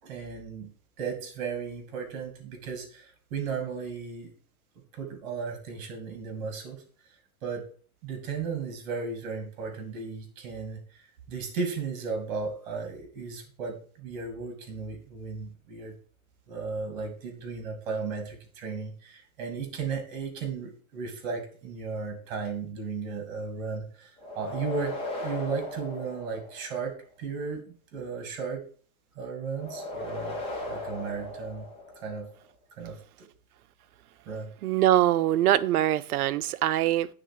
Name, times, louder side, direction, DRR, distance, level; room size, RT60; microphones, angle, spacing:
voice 1, 0.0-0.7 1.0-4.3 4.9-6.8 7.4-7.6 8.0-15.9 16.5-28.6 29.1-31.7 32.0-32.3 32.7-33.3 34.3-34.5, right 5 dB, 40° right, 2.7 m, -35 dB
sound 1, 24.2-26.9 29.5-32.3, left 2 dB, 15° left, 1.4 m, -37 dB
voice 2, 34.6-37.1, right 13 dB, 85° right, 0.7 m, -23 dB
9.0 x 3.8 x 6.8 m
supercardioid pair, 165°, 43 cm